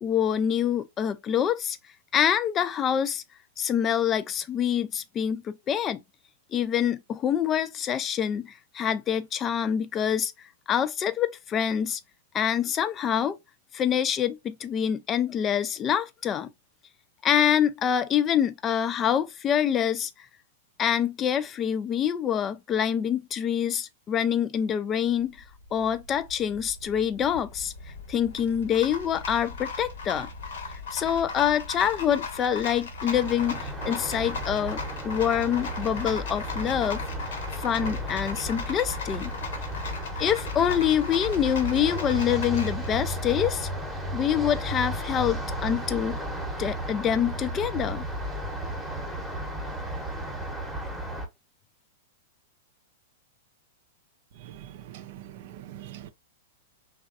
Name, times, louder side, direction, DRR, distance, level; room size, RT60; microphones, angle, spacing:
voice 1, 0.0-1.8 2.1-3.2 3.6-6.0 6.5-12.0 12.3-13.4 13.7-16.5 17.2-20.3 20.8-25.4 25.7-27.7 28.1-30.3 30.9-37.0 37.6-39.3 40.2-43.7 44.1-46.2 46.6-48.0, left 9 dB, 30° left, 0.3 m, -26 dB
Rattle, 25.1-43.7, left 4 dB, 70° left, 0.9 m, -38 dB
sound 1, 33.1-51.3, right 1 dB, ahead, 0.9 m, -34 dB
voice 2, 54.9-56.1, right 12 dB, 55° right, 0.4 m, -43 dB
3.1 x 2.3 x 2.4 m
hypercardioid pair, 105°, 0 cm